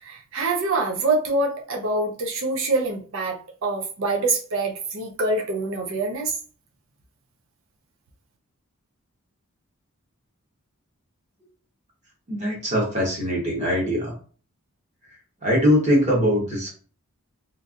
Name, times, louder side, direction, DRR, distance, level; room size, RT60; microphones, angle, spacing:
voice 1, 0.0-6.3, right 2 dB, 60° right, 0.6 m, -25 dB
voice 2, 12.3-14.1 15.4-16.7, equal, 30° right, 1.1 m, -22 dB
3.1 x 2.5 x 2.4 m
head